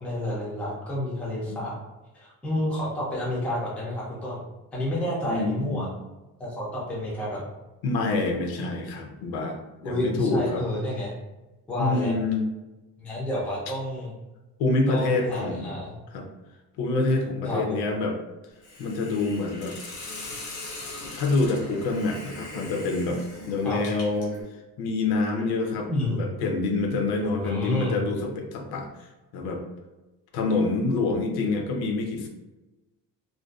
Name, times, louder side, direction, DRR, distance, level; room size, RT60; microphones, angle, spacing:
voice 1, 0.0-1.8 2.1-4.4 4.7-5.9 6.4-7.4 9.8-11.1 11.7-12.1 13.0-14.1 14.9-15.9 17.4-17.8 23.6-23.8 25.8-26.2 27.2-28.0, left 1 dB, 5° left, -6 dB, 0.3 m, -29 dB
voice 2, 5.2-5.9 7.8-10.6 11.8-12.4 14.6-15.7 16.1-16.2 16.8-18.1 18.8-19.8 21.1-24.4 24.8-25.9 26.1-29.1 29.3-29.6 30.3-32.3, left 3 dB, 75° left, 2 dB, 0.6 m, -26 dB
Hiss, 18.6-24.4, left 2 dB, 90° left, 0.9 m, -40 dB
2.5 x 2.2 x 2.3 m, 1.1 s
cardioid pair, 175°, 38 cm